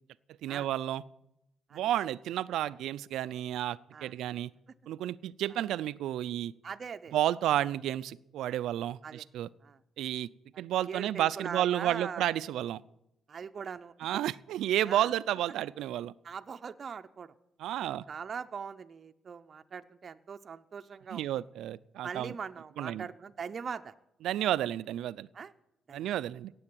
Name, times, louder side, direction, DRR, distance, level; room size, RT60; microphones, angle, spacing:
voice 1, 0.4-1.0 1.7-4.5 4.9-6.5 7.1-9.5 10.0-10.3 10.6-12.8 14.0-16.1 17.6-18.0 21.1-22.3 22.8-23.1 24.2-25.3 25.9-26.5, right 12 dB, 85° right, 17 dB, 0.5 m, -31 dB
voice 2, 3.9-4.4 6.6-7.2 9.0-9.3 9.6-9.8 10.9-12.3 13.3-14.2 14.8-15.1 16.2-17.3 17.8-21.3 22.0-23.9 25.3-25.5 25.9-26.1, right 6 dB, 45° right, 8 dB, 0.7 m, -41 dB
17.0 x 7.8 x 9.2 m, 0.84 s
cardioid pair, 90°, 0 cm